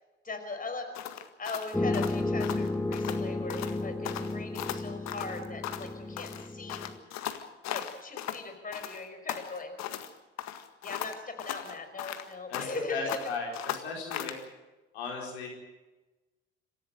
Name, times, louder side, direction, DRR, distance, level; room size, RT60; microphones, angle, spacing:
voice 1, 0.2-0.9 1.4-6.9 7.7-9.7 10.8-13.2, left 3 dB, 25° left, 5 dB, 5.3 m, -39 dB
sound 1, 0.9-3.2 3.5-3.8 4.0-5.9 6.2-8.4 8.7-10.1 10.4-12.8 13.1-14.4, left 12 dB, 60° left, 1.8 m, -38 dB
sound 2, 1.7-7.0, left 2 dB, 10° left, 1.5 m, -33 dB
voice 2, 12.5-14.3 14.9-15.5, left 3 dB, 80° left, 0 dB, 4.6 m, -36 dB
27.0 x 15.5 x 7.8 m, 1.1 s
hypercardioid pair, 55°, 32 cm